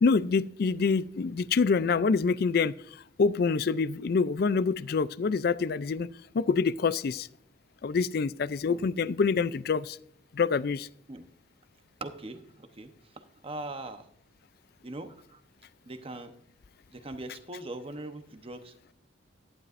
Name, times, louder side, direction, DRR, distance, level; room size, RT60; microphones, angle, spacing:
voice 1, 0.0-6.1 6.3-7.3 7.8-10.0 10.3-10.9, left 5 dB, 50° left, 17 dB, 0.4 m, -26 dB
voice 2, 12.0-12.4 12.8-12.9 13.4-14.1 14.8-15.4 15.9-16.3 16.9-18.7, right 2 dB, 30° right, 8 dB, 0.9 m, -40 dB
12.0 x 11.0 x 2.5 m, 0.69 s
head